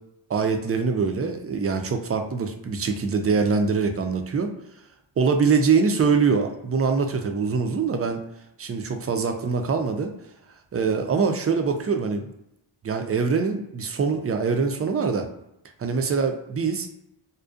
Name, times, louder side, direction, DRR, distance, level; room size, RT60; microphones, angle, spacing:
voice 1, 0.3-4.5 5.2-8.2 8.6-10.1 10.7-12.2 12.8-15.3 15.8-16.9, right 5 dB, 35° right, 6 dB, 0.4 m, -23 dB
2.6 x 2.1 x 2.3 m, 0.84 s
cardioid pair, 60°, 47 cm